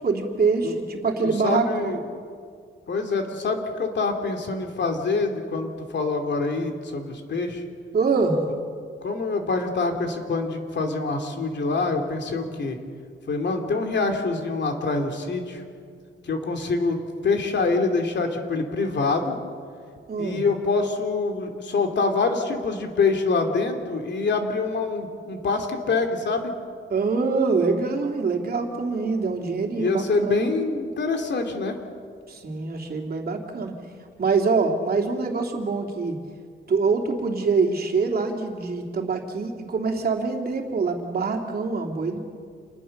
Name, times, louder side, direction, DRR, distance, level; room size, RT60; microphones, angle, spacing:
voice 1, 0.0-2.0 7.9-8.4 20.1-20.4 26.9-30.5 32.3-33.7 34.2-36.2 36.7-42.2, right 4 dB, 50° right, 1 dB, 3.0 m, -24 dB
voice 2, 1.2-2.0 2.9-7.6 9.0-12.8 13.3-15.6 16.2-19.4 20.2-26.5 29.8-31.8, left 3 dB, 60° left, 4 dB, 2.9 m, -25 dB
28.0 x 20.0 x 6.7 m, 2.1 s
wide cardioid pair, 125°, 20 cm